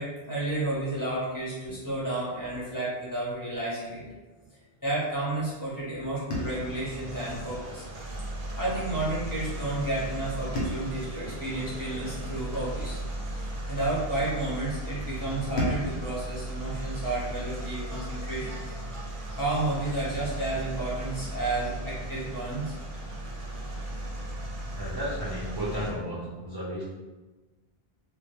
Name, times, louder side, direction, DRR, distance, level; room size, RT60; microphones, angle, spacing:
voice 1, 0.0-4.0 4.8-7.8 8.6-13.0 13.7-18.6 19.4-22.7, right 2 dB, 20° left, -9 dB, 0.7 m, -31 dB
sound 1, 6.3-8.6 10.5-13.0 15.6-18.1, equal, 80° left, 0.9 m, -38 dB
sound 2, 6.3-25.9, right 1 dB, 60° right, 0.7 m, -36 dB
voice 2, 24.7-26.8, equal, 40° right, -8 dB, 0.3 m, -33 dB
2.2 x 2.1 x 2.9 m, 1.2 s
omnidirectional pair, 1.0 m